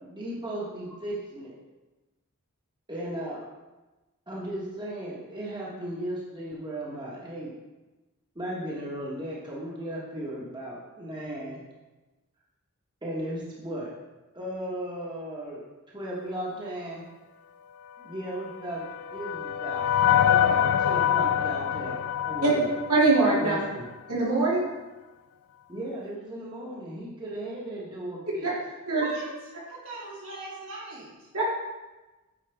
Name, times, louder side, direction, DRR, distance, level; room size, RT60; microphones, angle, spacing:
voice 1, 0.0-1.5 2.9-3.4 4.3-7.5 8.3-11.6 13.0-13.9 14.3-15.6 15.9-17.0 18.0-18.9 19.1-19.9 20.2-22.7 23.4-23.8 25.7-28.5, right 1 dB, 20° right, -6 dB, 1.2 m, -36 dB
sound 1, 18.4-23.7, left 10 dB, 70° left, 0.3 m, -25 dB
voice 2, 22.9-23.6 24.1-24.6 28.4-28.5 28.9-29.0 31.3-31.4, right 3 dB, 85° right, -6 dB, 2.4 m, -22 dB
voice 3, 28.9-29.3 29.7-31.3, right 3 dB, 65° right, -6 dB, 2.4 m, -40 dB
8.9 x 4.9 x 3.4 m, 1.1 s
head